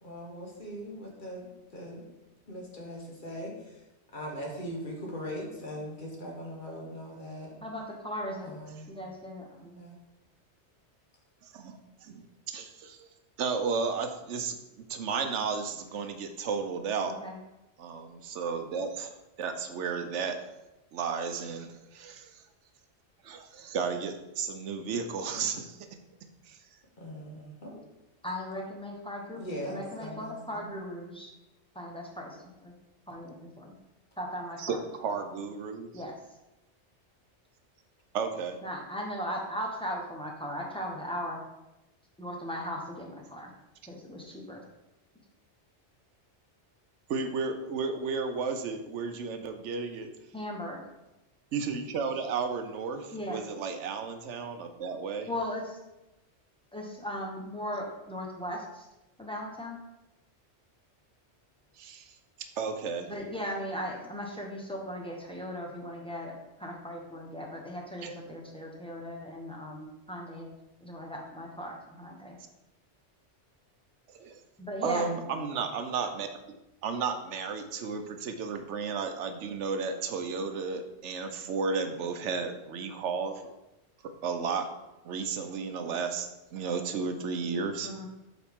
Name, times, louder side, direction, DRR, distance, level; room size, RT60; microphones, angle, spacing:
voice 1, 0.0-2.1 2.5-3.8 4.1-7.6 8.4-8.9 9.7-9.9 23.5-23.7 25.3-25.4 27.0-27.8 29.4-30.7, equal, 45° left, -2 dB, 1.4 m, -40 dB
voice 2, 7.6-8.5 8.9-9.8 17.0-17.4 28.2-31.3 31.7-32.7 33.1-33.7 34.2-34.8 35.9-36.1 38.6-41.4 42.2-43.5 43.9-44.6 50.3-50.8 53.1-53.4 55.3-55.8 56.7-58.9 59.2-59.8 63.1-66.3 66.6-70.5 70.8-72.4 74.6-75.2 87.8-88.1, equal, 5° left, -1 dB, 0.9 m, -38 dB
voice 3, 11.4-12.2 12.5-13.1 13.4-17.1 17.8-20.4 20.9-22.4 23.2-25.8 26.5-26.6 34.6-35.9 38.1-38.6 47.1-50.1 51.5-55.3 61.8-62.2 62.6-63.1 68.0-68.1 74.1-74.4 74.8-76.3 76.8-83.4 84.2-84.7 85.0-88.1, right 5 dB, 85° right, 7 dB, 1.0 m, -33 dB
7.6 x 4.1 x 3.5 m, 0.97 s
omnidirectional pair, 1.2 m